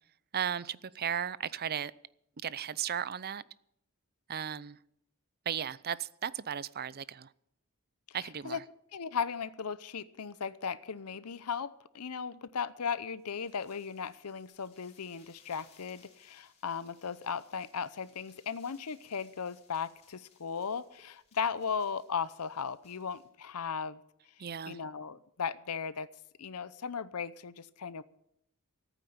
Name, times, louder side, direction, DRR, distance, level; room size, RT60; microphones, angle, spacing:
voice 1, 0.3-1.9 2.4-3.4 4.3-4.8 5.5-7.3 8.1-8.6 24.4-24.8, right 8 dB, 45° right, 0.6 m, -35 dB
voice 2, 8.1-8.6 8.9-24.0 24.4-26.1 26.4-28.0, left 6 dB, 90° left, 0.7 m, -37 dB
sound 1, 13.2-23.3, left 5 dB, 30° left, 3.2 m, -66 dB
14.5 x 9.1 x 9.3 m
head